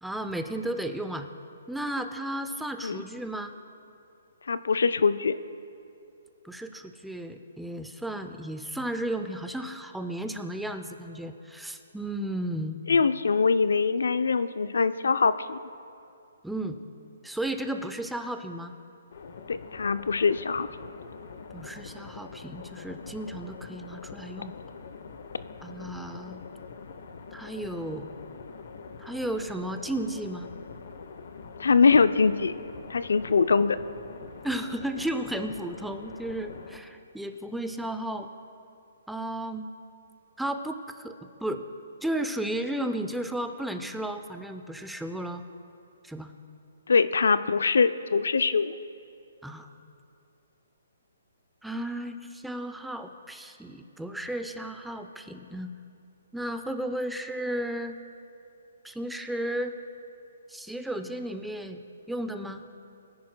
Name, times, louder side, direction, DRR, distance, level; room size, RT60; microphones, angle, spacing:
voice 1, 0.0-1.3 1.7-3.5 6.4-12.8 16.4-16.8 17.2-18.7 21.5-24.5 25.6-26.4 27.3-28.1 29.0-30.5 34.4-38.3 39.1-39.7 40.4-41.1 41.4-41.6 42.0-45.4 46.0-46.3 49.4-49.7 51.6-55.7 56.3-58.0 58.8-59.7 60.5-62.6, right 1 dB, ahead, 7 dB, 0.5 m, -34 dB
voice 2, 4.5-5.3 12.9-15.6 19.5-20.7 31.6-32.5 32.9-33.8 46.9-48.7, left 5 dB, 85° left, 13 dB, 0.4 m, -23 dB
sound 1, 19.1-36.8, left 5 dB, 60° left, 0.8 m, -44 dB
23.0 x 10.5 x 2.2 m, 2.6 s
hypercardioid pair, 155°, 0 cm